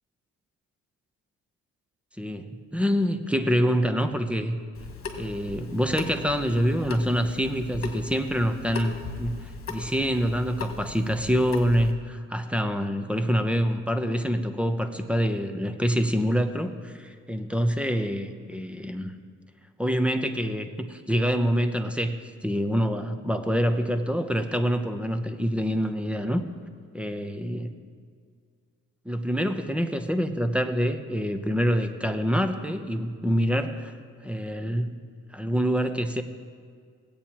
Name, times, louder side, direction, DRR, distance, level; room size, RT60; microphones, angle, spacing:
voice 1, 2.2-2.5 2.7-4.6 5.2-19.1 19.8-26.4 26.9-27.7 29.0-33.9 34.2-35.0 35.3-36.2, equal, 5° right, 7 dB, 0.7 m, -26 dB
Water tap faucet / Sink (filling or washing) / Drip, 4.7-11.9, left 4 dB, 50° left, 1.7 m, -38 dB
17.5 x 8.6 x 3.0 m, 2.1 s
cardioid pair, 90°, 30 cm